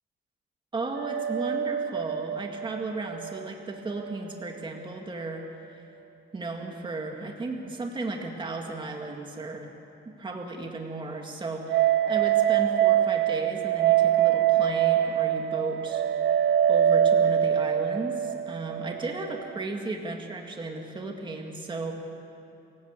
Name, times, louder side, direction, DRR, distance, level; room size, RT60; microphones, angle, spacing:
voice 1, 0.7-5.5 6.3-9.7 10.2-16.3 16.7-21.9, right 3 dB, 25° right, 2 dB, 2.1 m, -35 dB
sound 1, 1.0-4.2 4.4-4.5 11.7-19.6, right 10 dB, 80° right, 0.6 m, -24 dB
27.5 x 17.5 x 8.2 m, 2.7 s
wide cardioid pair, 165°, 19 cm